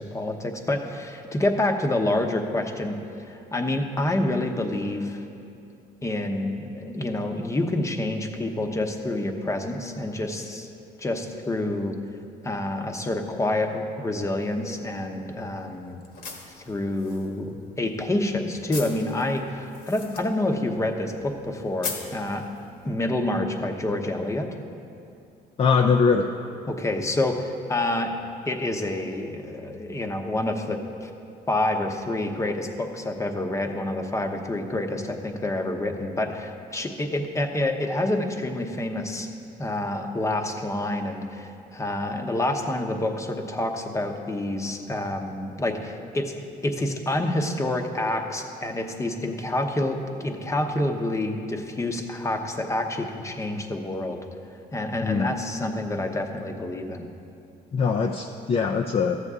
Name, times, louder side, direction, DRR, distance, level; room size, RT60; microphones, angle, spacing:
voice 1, 0.0-3.0 3.3-5.2 6.0-10.7 11.0-12.0 12.4-16.0 16.7-22.5 22.8-24.5 26.7-28.1 28.5-31.1 31.5-39.3 39.6-46.3 46.6-54.2 54.7-57.1, left 1 dB, 15° left, 5 dB, 0.8 m, -28 dB
sound 1, 14.4-23.0, left 4 dB, 65° left, 1.4 m, -42 dB
voice 2, 25.6-26.3 55.0-55.3 57.7-59.2, left 5 dB, 35° left, 3 dB, 0.4 m, -22 dB
13.0 x 8.0 x 3.7 m, 2.6 s
cardioid pair, 110°, 17 cm